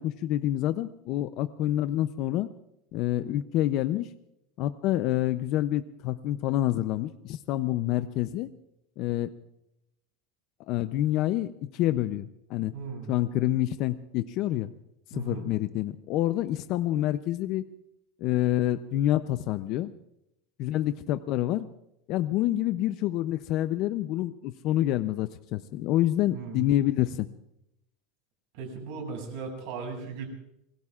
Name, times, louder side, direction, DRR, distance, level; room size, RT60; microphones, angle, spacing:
voice 1, 0.0-2.5 2.9-4.1 4.6-8.5 9.0-9.3 10.7-12.7 13.1-14.7 15.1-17.6 18.2-19.9 20.6-21.7 22.1-27.3, left 13 dB, 45° left, 11 dB, 0.5 m, -27 dB
voice 2, 12.7-13.1 15.1-15.5 26.3-26.6 28.5-30.3, right 5 dB, 60° right, 3 dB, 6.2 m, -37 dB
28.0 x 21.0 x 2.4 m, 0.83 s
supercardioid pair, 170°, 0 cm